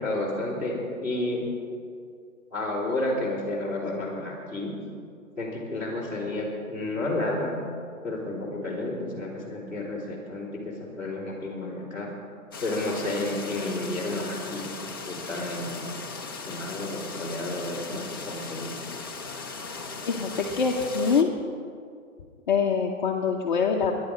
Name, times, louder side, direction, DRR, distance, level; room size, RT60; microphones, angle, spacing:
voice 1, 0.0-1.4 2.5-4.7 5.4-7.5 8.0-12.1 12.6-14.6 15.1-15.8 16.4-18.7, left 2 dB, 5° right, -9 dB, 3.3 m, -31 dB
sound 1, 12.5-21.2, left 4 dB, 15° left, 0.5 m, -38 dB
voice 2, 20.1-21.3 22.5-23.9, left 5 dB, 35° left, 0 dB, 0.8 m, -24 dB
21.0 x 10.5 x 5.0 m, 2.3 s
hypercardioid pair, 165°, 43 cm